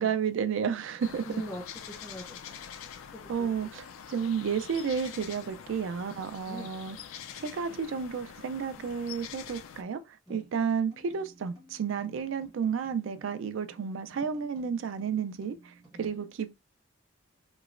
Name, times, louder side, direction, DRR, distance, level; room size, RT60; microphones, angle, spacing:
voice 1, 0.0-1.3 3.3-7.0 7.4-16.6, right 6 dB, 75° right, 0.4 m, -32 dB
sound 1, 1.0-9.8, left 8 dB, 90° left, 0.3 m, -45 dB
voice 2, 1.3-2.8 3.1-3.7 4.2-4.4 6.5-6.9 10.3-10.4 15.9-16.3, equal, 10° left, 0.4 m, -44 dB
sound 2, 10.3-16.0, right 1 dB, 20° right, 1.1 m, -57 dB
3.0 x 3.0 x 2.4 m
head